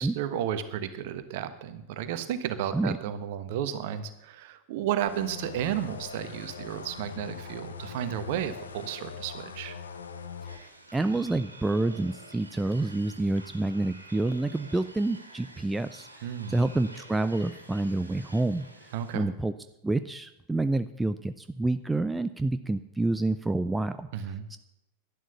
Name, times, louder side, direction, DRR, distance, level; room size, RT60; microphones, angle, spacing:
voice 1, 0.0-9.8 16.2-16.6 18.9-19.3 24.1-24.4, right 10 dB, 50° right, 11 dB, 1.3 m, -33 dB
sound 1, 5.1-10.6, left 6 dB, 70° left, 1.1 m, -42 dB
voice 2, 10.4-19.5 19.8-24.6, right 2 dB, 10° right, 11 dB, 0.5 m, -28 dB
sound 2, 10.5-19.2, right 2 dB, 80° right, 2.0 m, -49 dB
11.5 x 11.0 x 6.9 m, 0.91 s
figure-of-eight pair, 90°, 0 cm